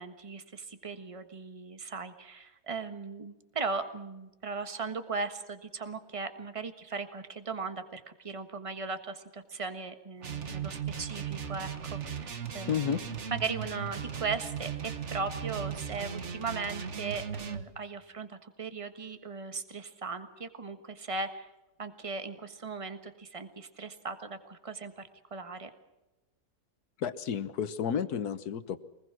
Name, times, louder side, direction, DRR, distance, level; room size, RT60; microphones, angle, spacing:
voice 1, 0.0-12.9 13.3-21.5 21.8-25.0 25.3-25.7, right 4 dB, 20° right, 8 dB, 1.4 m, -38 dB
sound 1, 10.2-17.7, right 7 dB, 50° right, 1.5 m, -37 dB
voice 2, 12.7-13.0 27.0-28.8, left 8 dB, 75° left, 13 dB, 1.5 m, -31 dB
23.5 x 20.5 x 6.1 m, 1.0 s
omnidirectional pair, 1.7 m